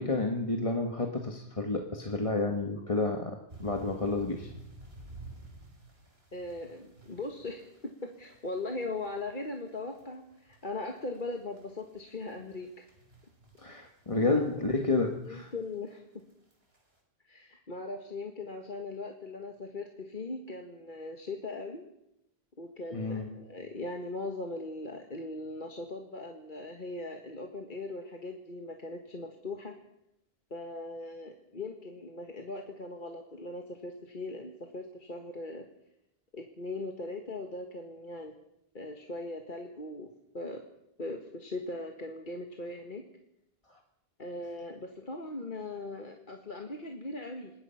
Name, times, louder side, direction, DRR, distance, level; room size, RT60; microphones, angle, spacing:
voice 1, 0.0-4.5 13.6-15.5 22.9-23.3 43.7-43.8, left 2 dB, 30° left, 3 dB, 1.6 m, -30 dB
sound 1, 3.5-15.0 15.5-15.7 16.3-16.8, right 1 dB, 70° right, 4.3 m, -52 dB
voice 2, 6.3-12.9 14.1-14.5 15.2-16.0 17.3-21.8 22.6-29.7 30.5-35.7 36.3-38.3 38.7-40.1 40.3-40.6 41.0-43.0 44.2-47.5, left 2 dB, 50° left, 3 dB, 1.9 m, -39 dB
27.0 x 20.0 x 5.8 m, 0.84 s
omnidirectional pair, 1.1 m